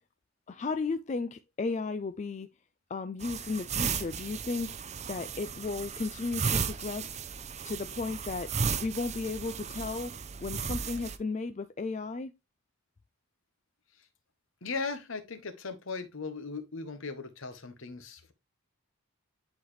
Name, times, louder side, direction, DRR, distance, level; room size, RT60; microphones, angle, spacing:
voice 1, 0.5-2.5 2.9-4.8 5.1-7.2 7.6-8.5 8.8-12.3, left 3 dB, 30° left, 0.3 m, -34 dB
sound 1, 3.2-11.2, right 6 dB, 30° right, 0.5 m, -35 dB
voice 2, 14.6-18.3, left 4 dB, 60° left, 1.1 m, -38 dB
10.5 x 4.0 x 3.2 m
head